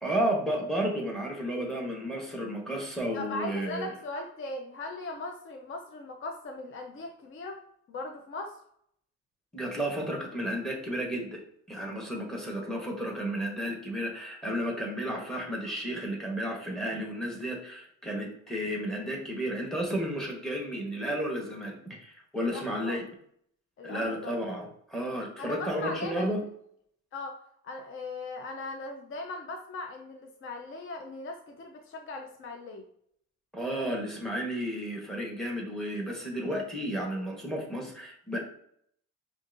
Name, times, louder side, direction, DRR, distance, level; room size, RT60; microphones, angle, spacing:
voice 1, 0.0-3.9 9.5-11.4 11.7-23.0 23.8-26.4 33.5-38.4, equal, ahead, 0 dB, 1.2 m, -32 dB
voice 2, 3.1-7.6 7.9-8.6 22.4-23.0 23.8-24.3 25.4-26.4 27.1-27.4 27.6-32.8, left 2 dB, 45° left, 3 dB, 0.6 m, -39 dB
5.1 x 2.5 x 2.6 m, 0.68 s
cardioid pair, 90°, 30 cm